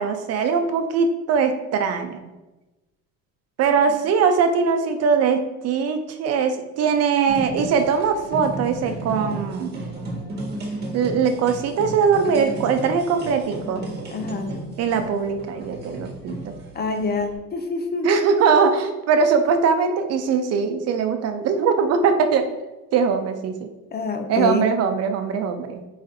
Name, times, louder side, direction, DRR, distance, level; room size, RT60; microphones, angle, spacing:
voice 1, 0.0-2.2 3.6-9.8 10.9-13.8 14.8-16.3 18.0-22.5 22.9-23.5 24.3-25.8, right 6 dB, 55° right, 7 dB, 0.6 m, -21 dB
sound 1, 7.3-17.4, right 1 dB, 35° right, 1.3 m, -34 dB
voice 2, 14.1-14.5 16.7-18.1 23.9-24.6, left 3 dB, 35° left, 5 dB, 0.6 m, -26 dB
4.8 x 2.5 x 4.1 m, 1.0 s
cardioid pair, 100°, 29 cm